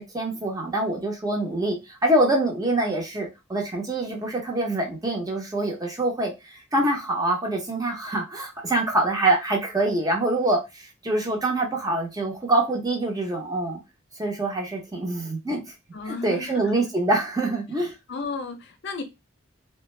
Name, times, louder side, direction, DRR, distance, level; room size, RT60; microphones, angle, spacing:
voice 1, 0.0-13.8 14.2-15.7 16.1-17.9, right 2 dB, 20° right, 0.7 m, -25 dB
voice 2, 15.9-16.7 18.1-19.0, left 4 dB, 60° left, 0.5 m, -33 dB
2.5 x 2.2 x 3.1 m
head